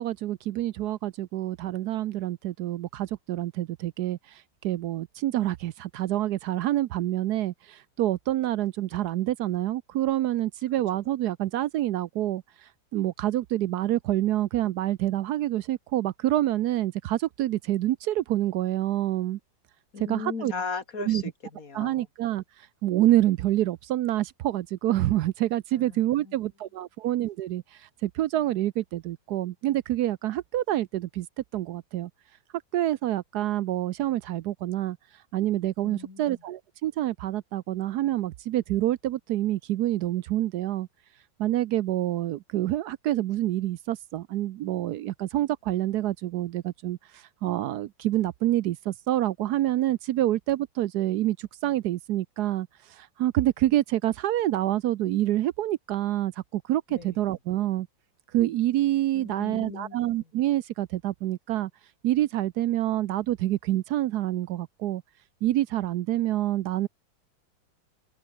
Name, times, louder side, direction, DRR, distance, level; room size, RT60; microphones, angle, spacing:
voice 1, 0.0-12.4 12.9-19.4 20.1-20.5 21.1-21.2 21.7-22.4 22.8-31.3 31.5-32.1 32.7-35.0 35.3-40.9 41.4-57.9 58.3-61.7 62.0-65.0 65.4-66.9, right 14 dB, 70° right, 1.0 m, -27 dB
voice 2, 19.9-22.1 25.7-26.4 35.8-36.4 56.9-57.2 59.1-60.0, left 4 dB, 50° left, 2.9 m, -37 dB
open air
omnidirectional pair, 2.0 m